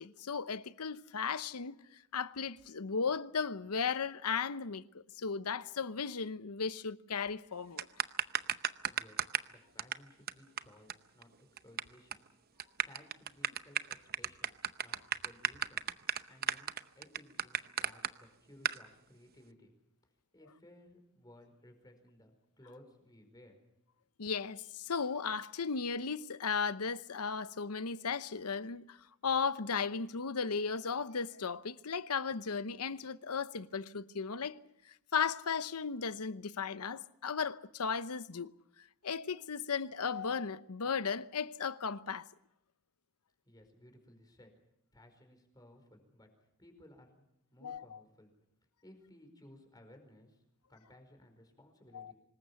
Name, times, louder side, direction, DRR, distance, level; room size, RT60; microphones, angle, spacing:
voice 1, 0.0-1.8 2.1-7.9 24.2-29.0 29.2-34.6 35.1-38.5 39.0-42.3 47.6-48.0 51.9-52.1, left 5 dB, 90° left, 0.9 m, -36 dB
sound 1, 7.8-9.5 9.8-9.9 10.3-10.4 10.6-10.7 10.9-11.0 11.2-11.8 12.1-12.3 12.6-18.1 18.6-18.8, right 9 dB, 45° right, 0.8 m, -33 dB
voice 2, 8.8-9.2 9.5-12.2 12.8-14.5 14.8-15.0 15.2-15.8 16.3-19.7 20.3-23.6 43.4-44.5 44.9-46.3 46.6-47.3 47.5-48.3 48.8-50.4 50.7-52.1, left 1 dB, 20° left, 4.9 m, -59 dB
25.5 x 20.5 x 7.0 m
head